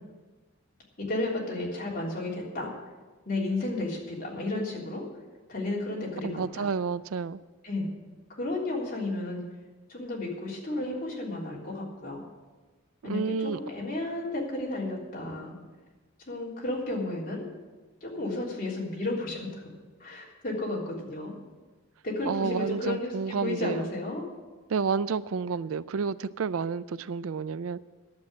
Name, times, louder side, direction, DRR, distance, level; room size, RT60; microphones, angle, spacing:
voice 1, 1.1-2.7 3.2-5.0 5.5-6.7 7.6-7.9 8.3-9.4 9.9-12.2 13.0-15.5 16.3-17.5 18.0-19.5 20.0-21.3 22.0-24.3, left 2 dB, 40° left, -4 dB, 3.5 m, -32 dB
voice 2, 6.2-7.4 13.0-13.6 22.2-23.9 24.7-27.8, right 5 dB, 80° right, 16 dB, 0.4 m, -30 dB
11.5 x 7.5 x 9.7 m, 1.3 s
head